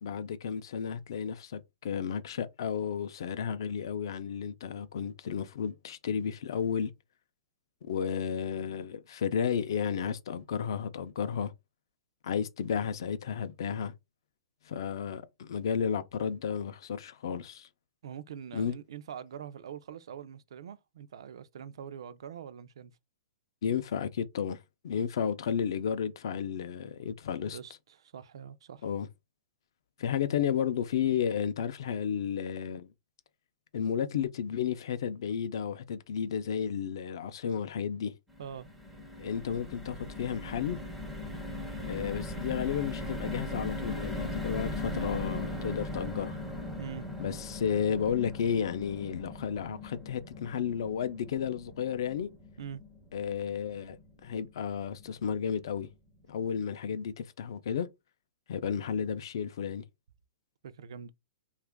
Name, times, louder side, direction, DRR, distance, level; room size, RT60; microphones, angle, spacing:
voice 1, 0.0-6.9 7.8-11.5 12.2-13.9 14.6-17.7 18.5-18.7 23.6-27.6 28.8-29.1 30.0-32.9 33.7-38.1 39.2-40.8 41.9-46.4 47.2-52.3 53.1-54.0 54.2-55.9 56.3-57.9 58.5-59.9, left 7 dB, 55° left, 0.4 m, -32 dB
voice 2, 18.0-22.9 27.5-28.8 38.4-38.7 46.8-47.1 52.6-52.8 60.6-61.1, right 8 dB, 70° right, 0.4 m, -44 dB
sound 1, 38.3-54.6 55.0-55.1 55.4-55.6, left 1 dB, ahead, 0.4 m, -39 dB
2.9 x 2.4 x 3.4 m
hypercardioid pair, 175°, 3 cm